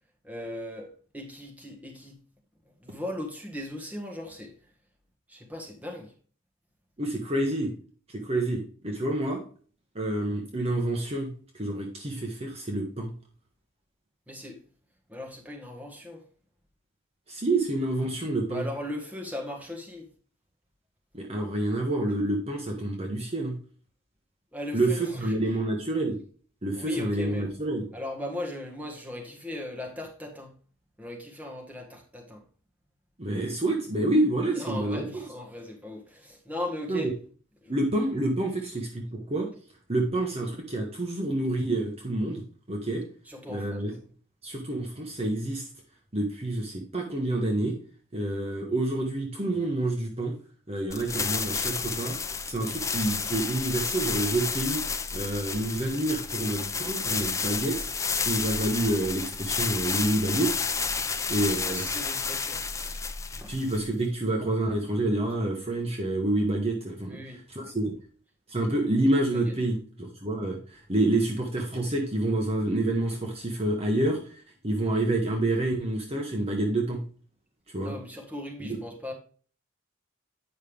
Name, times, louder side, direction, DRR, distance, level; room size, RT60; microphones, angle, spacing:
voice 1, 0.2-2.2 2.8-4.7 5.3-6.1 14.3-14.6 15.1-16.2 18.5-20.1 24.5-25.5 26.7-27.5 27.9-30.6 31.0-32.4 34.5-37.2 37.6-37.8 43.2-44.0 61.4-63.0 63.4-63.5 67.1-67.7 69.4-69.5 77.8-79.1, left 1 dB, 5° right, 1.6 m, -38 dB
voice 2, 7.0-7.7 8.1-9.4 9.9-13.1 17.3-18.6 21.1-23.6 24.7-26.2 26.6-27.9 33.2-35.2 36.9-37.1 37.7-39.5 39.9-43.0 43.5-43.9 44.4-45.7 46.1-47.8 48.1-50.3 50.7-52.2 52.5-54.8 55.1-60.6 61.3-61.8 63.5-67.2 67.5-67.9 68.5-77.0 77.7-77.9 78.6-78.7, right 1 dB, 30° right, 1.2 m, -28 dB
sound 1, 50.9-64.0, left 5 dB, 15° left, 0.4 m, -31 dB
9.0 x 5.5 x 3.4 m
head